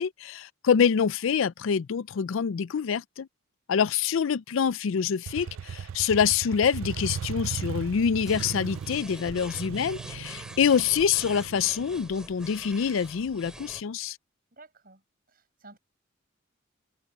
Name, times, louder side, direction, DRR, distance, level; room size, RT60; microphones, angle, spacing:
voice 1, 0.0-3.3 3.7-14.2, left 7 dB, 70° left, 0.4 m, -26 dB
Motorcycle, 5.3-12.9, right 7 dB, 75° right, 0.4 m, -37 dB
sound 1, 8.3-13.8, right 1 dB, 5° right, 2.8 m, -45 dB
voice 2, 14.5-15.8, right 2 dB, 45° right, 7.0 m, -53 dB
head